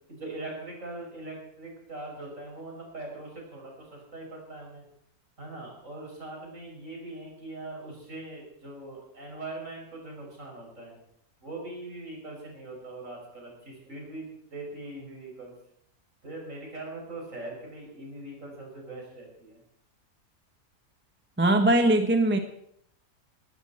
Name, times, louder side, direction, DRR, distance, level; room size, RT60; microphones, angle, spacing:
voice 1, 0.1-4.9 5.4-11.0 11.4-15.5 16.2-19.6, right 2 dB, 55° right, -1 dB, 6.4 m, -41 dB
voice 2, 21.4-22.4, right 1 dB, 10° right, 6 dB, 1.1 m, -21 dB
18.5 x 16.0 x 4.3 m, 0.70 s
omnidirectional pair, 1.6 m